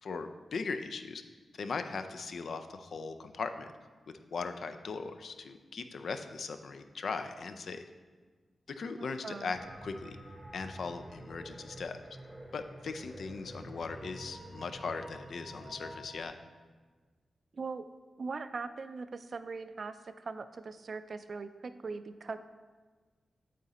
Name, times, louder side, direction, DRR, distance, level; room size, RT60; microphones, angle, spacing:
voice 1, 0.0-1.2 1.6-3.7 4.1-7.8 8.7-10.2 10.5-12.0 12.5-16.3, left 4 dB, 70° left, 8 dB, 0.4 m, -39 dB
voice 2, 9.0-9.5 17.5-17.9 18.2-22.4, right 4 dB, 55° right, 11 dB, 0.3 m, -40 dB
sound 1, 9.5-16.3, right 1 dB, 10° right, 0.8 m, -48 dB
8.5 x 3.9 x 4.2 m, 1.4 s
cardioid pair, 70°, 0 cm